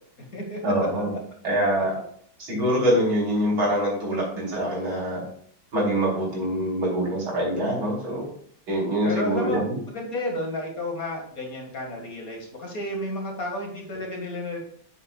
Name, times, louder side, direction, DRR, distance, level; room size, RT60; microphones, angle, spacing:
voice 1, 0.6-1.1 1.4-1.9 2.4-5.2 5.7-8.3 8.7-9.6, equal, 80° right, -4 dB, 4.2 m, -24 dB
voice 2, 9.0-9.6 9.9-14.6, left 1 dB, 45° left, 0 dB, 2.2 m, -31 dB
9.1 x 8.1 x 2.4 m, 0.62 s
omnidirectional pair, 2.2 m